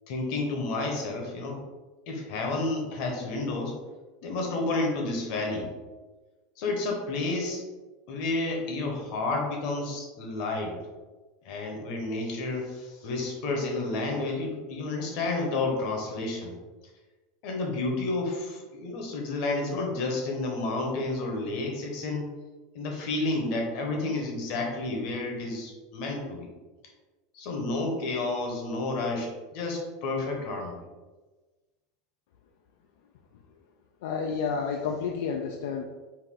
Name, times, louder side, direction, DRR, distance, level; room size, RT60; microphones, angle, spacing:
voice 1, 0.1-1.6 2.1-3.8 4.2-5.7 6.6-7.6 8.1-10.8 11.4-16.5 17.4-22.3 22.7-26.5 27.3-30.8, left 2 dB, 50° left, 1 dB, 1.1 m, -30 dB
voice 2, 34.0-35.8, left 5 dB, 75° left, 2 dB, 0.4 m, -30 dB
4.6 x 2.6 x 3.7 m, 1.2 s
supercardioid pair, 160°, 0 cm